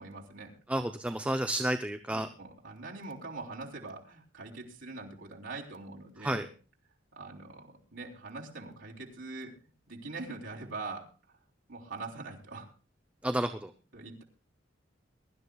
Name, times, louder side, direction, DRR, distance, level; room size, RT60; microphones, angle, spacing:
voice 1, 0.0-0.6 2.1-6.5 7.2-9.6 9.9-11.4 11.7-12.7 13.9-14.2, right 3 dB, 90° right, -1 dB, 3.5 m, -43 dB
voice 2, 0.7-2.3 6.2-6.5 13.2-13.7, right 1 dB, 5° right, 7 dB, 0.6 m, -31 dB
22.5 x 13.0 x 2.3 m, 0.37 s
head